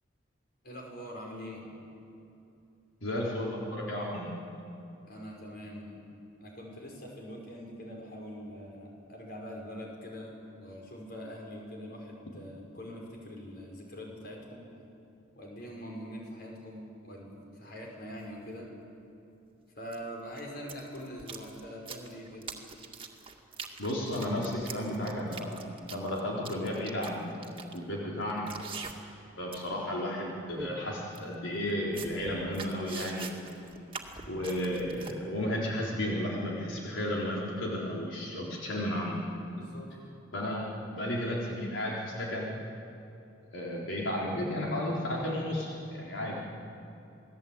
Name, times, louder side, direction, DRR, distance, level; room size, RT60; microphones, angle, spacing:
voice 1, 0.6-1.7 5.1-6.0 6.4-14.7 15.3-18.7 19.8-22.5 39.5-39.9, equal, 50° left, 0 dB, 5.6 m, -43 dB
voice 2, 3.0-4.3 23.8-28.5 29.4-33.3 34.3-39.2 40.3-42.5 43.5-46.4, left 1 dB, 80° left, -4 dB, 4.0 m, -33 dB
sound 1, 17.9-18.0 19.9-20.0 20.3-29.2 29.5-29.8 30.1-30.2 30.5-30.7 31.1-31.2 31.6-35.1, right 5 dB, 25° right, 2.1 m, -44 dB
28.0 x 19.0 x 8.9 m, 2.8 s
head